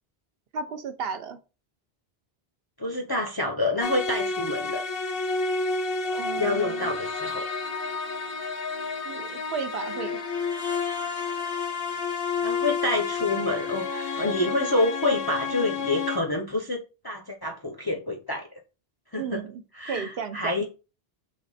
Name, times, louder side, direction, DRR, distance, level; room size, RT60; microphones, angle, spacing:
voice 1, 0.5-1.4 6.1-6.9 9.0-10.2 19.1-20.6, right 6 dB, 70° right, 0.8 m, -34 dB
voice 2, 2.8-4.8 6.4-7.5 12.4-18.5 19.1-19.4 19.7-20.6, left 2 dB, 30° left, 0.5 m, -28 dB
sound 1, 3.8-16.2, left 4 dB, 65° left, 0.8 m, -30 dB
3.6 x 3.2 x 4.0 m
omnidirectional pair, 1.0 m